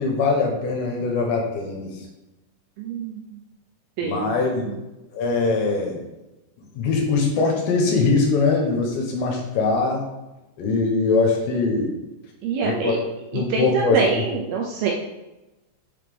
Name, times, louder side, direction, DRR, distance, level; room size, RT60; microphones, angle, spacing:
voice 1, 0.0-1.9 4.0-4.7 5.1-6.0 6.7-10.0 10.6-11.9 12.6-13.0 13.3-14.0, left 4 dB, 80° left, 1 dB, 3.2 m, -22 dB
voice 2, 2.8-3.4 4.0-4.8 12.4-13.0 13.3-14.9, right 5 dB, 80° right, -1 dB, 2.2 m, -26 dB
6.7 x 5.6 x 3.5 m, 1.0 s
omnidirectional pair, 5.1 m